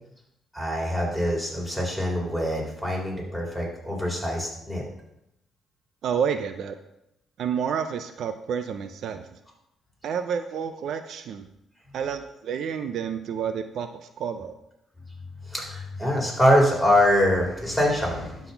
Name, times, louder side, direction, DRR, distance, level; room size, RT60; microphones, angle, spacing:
voice 1, 0.5-4.8 15.4-18.5, equal, ahead, -3 dB, 4.0 m, -24 dB
voice 2, 6.0-6.8 7.4-9.3 10.0-11.5 11.9-13.9 14.2-14.5, right 7 dB, 70° right, 9 dB, 0.5 m, -29 dB
12.0 x 4.1 x 5.8 m, 0.83 s
cardioid pair, 90°, 0 cm